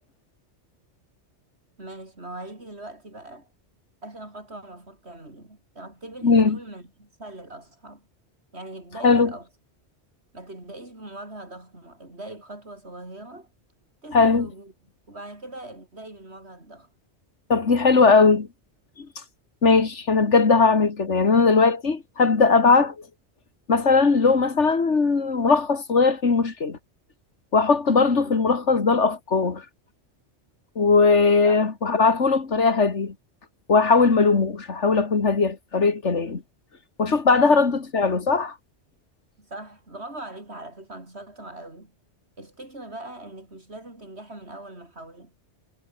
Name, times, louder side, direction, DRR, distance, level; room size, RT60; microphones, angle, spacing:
voice 1, 1.8-3.5 4.0-8.1 8.5-9.5 10.3-13.5 14.0-14.7 15.1-16.9 28.2-28.5 31.5-31.6 37.4-37.6 39.4-41.9 42.4-45.3, right 2 dB, 70° right, 6.1 m, -41 dB
voice 2, 6.2-6.6 9.0-9.3 14.1-14.5 17.5-18.5 19.0-19.1 19.6-23.0 23.7-26.8 27.5-29.6 30.8-33.1 33.7-36.4 37.0-38.5, left 4 dB, 90° left, 2.5 m, -19 dB
omnidirectional pair, 1.2 m